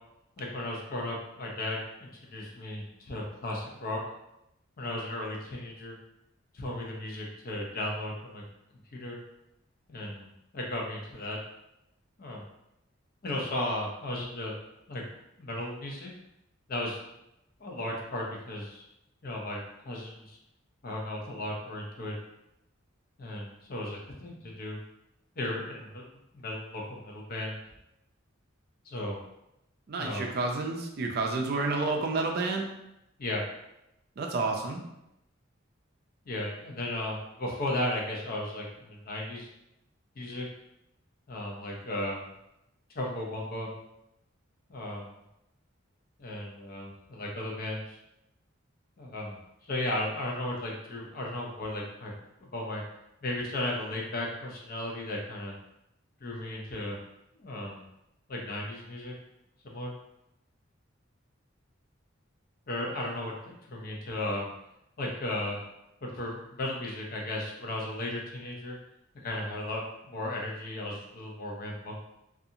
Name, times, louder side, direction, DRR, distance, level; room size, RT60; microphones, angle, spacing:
voice 1, 0.4-4.0 4.8-6.0 6.5-8.4 8.9-9.2 9.9-11.4 12.2-12.4 13.2-14.5 14.9-15.0 15.4-16.1 16.7-17.0 17.6-18.8 19.2-20.4 20.8-22.1 23.2-24.8 25.4-26.0 26.3-27.6 28.9-29.2 30.0-30.3 33.2-33.4 36.3-39.5 40.2-40.5 41.3-42.2 42.9-43.7 44.7-45.1 46.2-48.0 49.0-49.4 49.6-52.1 52.4-52.8 53.2-55.5 56.2-57.0 57.4-57.8 58.3-59.1 59.6-59.9 62.7-63.3 63.7-64.5 65.0-65.6 66.0-68.8 69.2-72.0, left 1 dB, 45° left, -1 dB, 0.5 m, -35 dB
voice 2, 29.9-32.7 34.2-34.8, right 3 dB, 50° right, 2 dB, 0.4 m, -30 dB
2.6 x 2.4 x 2.7 m, 0.85 s
head